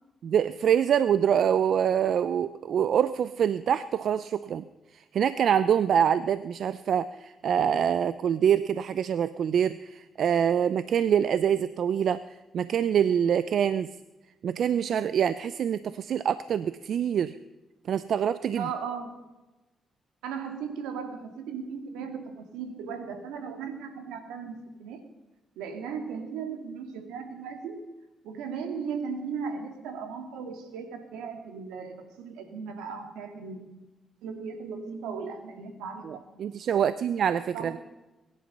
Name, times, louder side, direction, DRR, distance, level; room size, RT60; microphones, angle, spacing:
voice 1, 0.2-4.6 4.9-12.2 12.5-13.9 14.4-17.3 17.9-18.7 36.0-37.8, right 8 dB, 70° right, 14 dB, 0.5 m, -25 dB
voice 2, 18.6-19.2 20.2-25.0 25.6-27.8 28.2-33.7 34.2-36.9 37.5-37.8, right 6 dB, 90° right, 6 dB, 2.3 m, -37 dB
22.5 x 10.5 x 5.5 m, 1.1 s
supercardioid pair, 55°, 0 cm